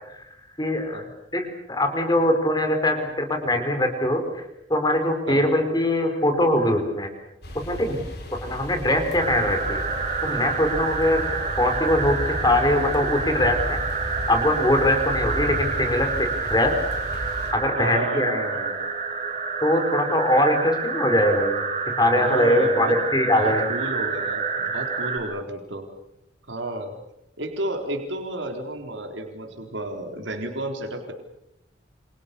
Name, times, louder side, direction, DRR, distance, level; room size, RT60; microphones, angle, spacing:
voice 1, 0.6-1.0 1.3-4.4 4.7-7.1 7.7-8.0 8.4-9.8 10.2-13.8 14.3-16.7 17.5-18.4 19.6-21.6 22.0-23.7, left 1 dB, 20° left, 6 dB, 4.6 m, -22 dB
sound 1, 7.4-17.5, equal, 55° left, 6.3 m, -34 dB
sound 2, 9.2-25.2, right 4 dB, 35° right, 4.3 m, -28 dB
voice 2, 17.8-18.8 22.1-23.0 23.3-25.9 26.5-26.9 27.4-31.1, right 1 dB, 75° right, 3 dB, 3.9 m, -31 dB
28.5 x 27.0 x 6.9 m, 0.83 s
head